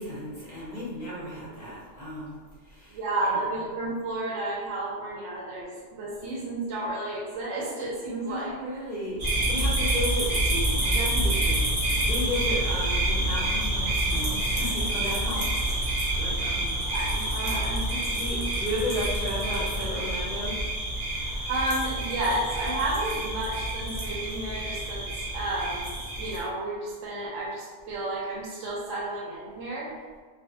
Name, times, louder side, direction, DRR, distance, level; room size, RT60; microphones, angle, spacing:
voice 1, 0.0-3.7 8.1-16.8 18.1-20.6, left 1 dB, 40° left, -7 dB, 0.7 m, -34 dB
voice 2, 2.9-8.6 16.9-18.0 21.5-29.9, right 2 dB, 70° right, -5 dB, 0.9 m, -32 dB
sound 1, 9.2-26.4, right 1 dB, 50° right, 0.5 m, -28 dB
2.4 x 2.3 x 2.6 m, 1.5 s
omnidirectional pair, 1.5 m